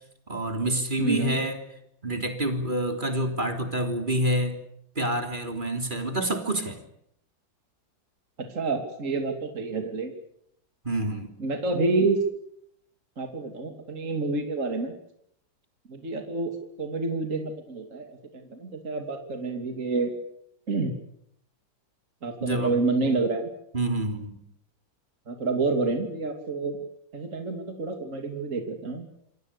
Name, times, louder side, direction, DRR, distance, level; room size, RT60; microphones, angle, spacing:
voice 1, 0.3-1.6 2.0-4.6 5.0-6.8 10.8-11.3 22.4-22.8 23.0-23.2 23.7-24.4, right 1 dB, 25° right, 6 dB, 3.5 m, -27 dB
voice 2, 1.0-1.4 8.4-10.1 11.4-12.2 13.2-14.9 15.9-18.2 18.5-20.1 20.7-20.9 22.2-23.5 25.3-26.8 27.1-29.1, right 3 dB, 40° right, 5 dB, 3.1 m, -28 dB
27.5 x 25.0 x 6.8 m, 0.72 s
omnidirectional pair, 2.1 m